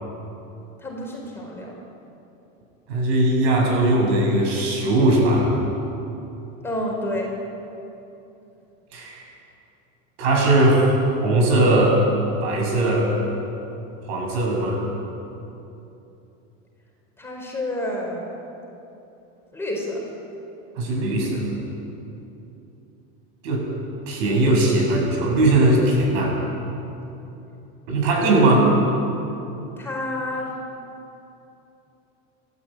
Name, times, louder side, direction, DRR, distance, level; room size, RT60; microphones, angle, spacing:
voice 1, 0.8-1.7 6.6-7.3 17.2-18.3 19.5-20.0 28.4-28.5 29.8-30.5, left 1 dB, 5° left, -2 dB, 4.8 m, -29 dB
voice 2, 2.9-5.5 8.9-9.2 10.2-11.0 11.2-12.0 12.4-13.1 14.1-14.8 20.8-21.5 23.4-23.6 24.1-26.3 27.9-28.7, right 2 dB, 80° right, 0 dB, 7.7 m, -19 dB
29.5 x 13.5 x 9.2 m, 2.9 s
cardioid pair, 155°, 32 cm